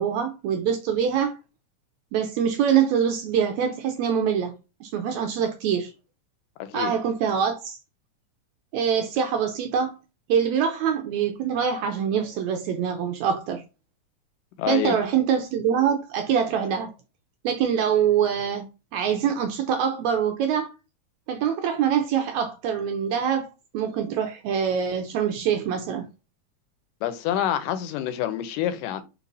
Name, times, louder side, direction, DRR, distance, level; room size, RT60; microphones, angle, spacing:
voice 1, 0.0-1.4 2.1-4.5 4.8-5.9 6.7-7.8 8.7-9.9 10.3-13.6 14.7-16.9 17.4-20.7 21.3-23.5 23.7-26.0, right 8 dB, 80° right, 1.6 m, -24 dB
voice 2, 6.6-6.9 14.6-15.0 27.0-29.0, left 10 dB, 90° left, 2.2 m, -27 dB
4.4 x 4.1 x 2.6 m
omnidirectional pair, 3.7 m